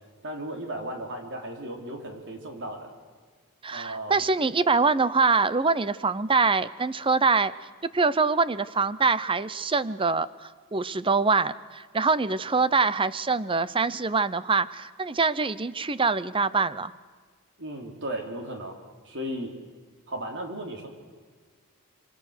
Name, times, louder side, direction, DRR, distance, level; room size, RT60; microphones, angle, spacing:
voice 1, 0.2-2.9 3.7-4.2 17.6-18.8 19.0-19.5 20.1-20.9, right 1 dB, 55° right, 3 dB, 3.5 m, -35 dB
voice 2, 3.6-7.5 7.9-16.9, right 4 dB, 25° right, 16 dB, 0.7 m, -24 dB
27.0 x 25.0 x 6.6 m, 1.5 s
head